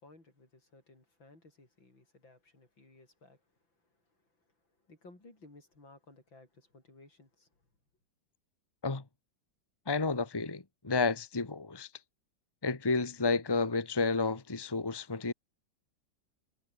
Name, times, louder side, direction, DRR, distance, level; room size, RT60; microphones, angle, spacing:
voice 1, 0.0-3.5 3.8-4.5 4.9-7.5, left 2 dB, 85° left, 8.0 m, -58 dB
voice 2, 9.9-11.9 12.6-15.3, left 4 dB, 15° left, 1.4 m, -31 dB
omnidirectional pair, 2.0 m